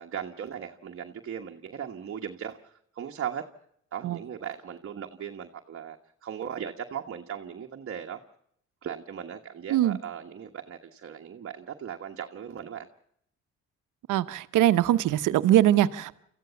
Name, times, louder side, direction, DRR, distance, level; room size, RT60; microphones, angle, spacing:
voice 1, 0.0-3.4 3.9-8.2 8.8-12.9, right 8 dB, 45° right, 3 dB, 1.4 m, -38 dB
voice 2, 14.1-16.1, right 13 dB, 85° right, 13 dB, 1.0 m, -22 dB
27.0 x 15.0 x 7.0 m, 0.71 s
cardioid pair, 90°, 30 cm